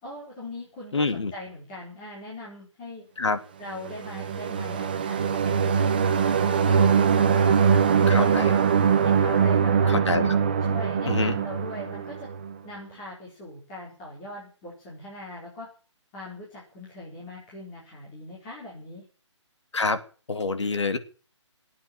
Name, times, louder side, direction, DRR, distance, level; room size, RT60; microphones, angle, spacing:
voice 1, 0.0-3.1 3.6-8.6 9.0-10.0 10.6-12.3 12.6-15.7 16.1-19.0, left 1 dB, 15° left, -7 dB, 4.5 m, -40 dB
voice 2, 0.9-1.3 3.2-3.4 8.1-8.5 9.9-10.4 11.1-11.4 19.7-20.0 20.3-21.0, left 3 dB, 70° left, 9 dB, 2.7 m, -26 dB
sound 1, 3.8-12.5, right 6 dB, 20° right, 0.8 m, -22 dB
17.5 x 9.0 x 8.9 m, 0.39 s
hypercardioid pair, 180°, 16 cm